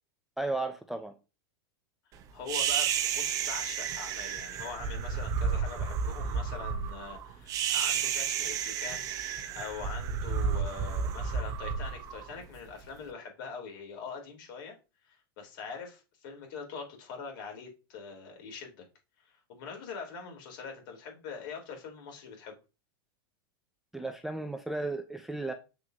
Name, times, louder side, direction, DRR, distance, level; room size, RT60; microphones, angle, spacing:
voice 1, 0.4-1.1 23.9-25.5, right 2 dB, ahead, 0.3 m, -34 dB
voice 2, 2.3-14.8 15.0-18.8 19.2-22.6, left 5 dB, 55° left, 3.0 m, -43 dB
sound 1, 2.5-12.8, right 7 dB, 25° right, 0.8 m, -32 dB
7.3 x 6.1 x 2.7 m
supercardioid pair, 160°, 13 cm